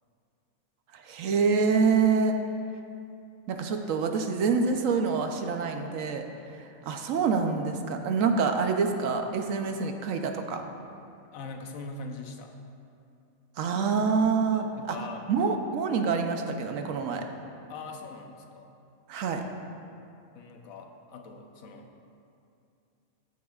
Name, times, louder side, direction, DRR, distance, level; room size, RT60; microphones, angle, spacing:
voice 1, 0.9-2.4 3.5-10.6 13.6-15.0 15.3-17.2 19.1-19.4, right 5 dB, 70° right, 5 dB, 1.1 m, -26 dB
voice 2, 11.3-12.6 14.5-15.3 17.7-18.8 20.3-21.9, left 3 dB, 75° left, 4 dB, 1.2 m, -42 dB
13.5 x 9.5 x 2.4 m, 2.6 s
omnidirectional pair, 1.4 m